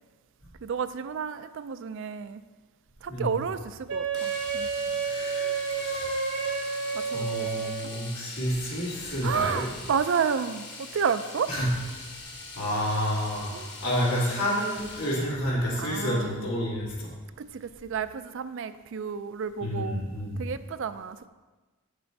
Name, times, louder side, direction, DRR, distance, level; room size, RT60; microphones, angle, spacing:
voice 1, 0.6-2.4 3.0-4.7 6.9-7.7 9.2-11.5 13.5-13.7 15.8-16.5 17.4-20.0 20.4-21.3, right 6 dB, 55° right, 12 dB, 0.4 m, -31 dB
Wind instrument woodwind instrument, 3.9-8.0, right 5 dB, 75° right, 2.1 m, -30 dB
Domestic sounds home sounds, 4.1-15.4 17.5-17.7 17.9-18.0, left 3 dB, 50° left, 1.3 m, -43 dB
voice 2, 5.0-6.1 7.1-9.6 11.5-11.7 12.5-13.5 13.8-17.1 19.6-20.5, equal, 80° left, -6 dB, 2.9 m, -29 dB
8.5 x 6.7 x 4.5 m, 1.3 s
head